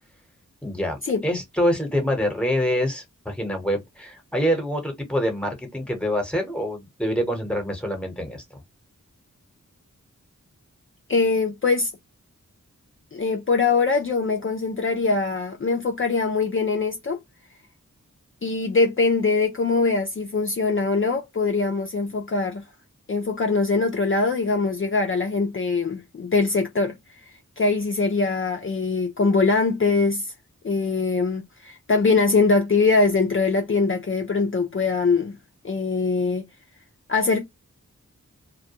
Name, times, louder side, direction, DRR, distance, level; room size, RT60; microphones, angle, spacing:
voice 1, 0.6-8.4, equal, 5° left, 1.0 m, -26 dB
voice 2, 11.1-11.9 13.1-17.2 18.4-22.6 23.1-27.0 27.6-30.3 30.6-35.4 35.6-36.4 37.1-37.4, left 4 dB, 40° left, 0.5 m, -22 dB
2.2 x 2.2 x 2.8 m
wide cardioid pair, 65°, 31 cm